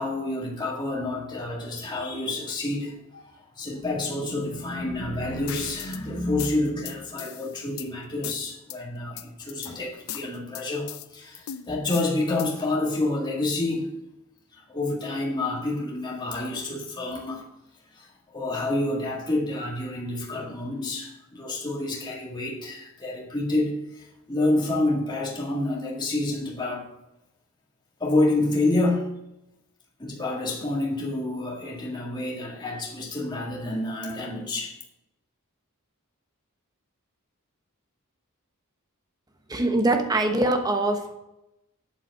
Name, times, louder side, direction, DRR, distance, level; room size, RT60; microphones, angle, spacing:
voice 1, 0.0-14.0 14.5-17.4 17.9-26.9 28.0-29.1 30.0-34.7, left 2 dB, 20° left, -3 dB, 1.9 m, -28 dB
sound 1, 5.5-6.0 6.4-7.9 8.2-8.8 9.2-9.7 10.1-11.1 11.5-12.7, left 11 dB, 65° left, 0.6 m, -38 dB
voice 2, 39.5-41.1, right 2 dB, 20° right, 5 dB, 1.1 m, -23 dB
8.3 x 7.4 x 5.9 m, 0.90 s
head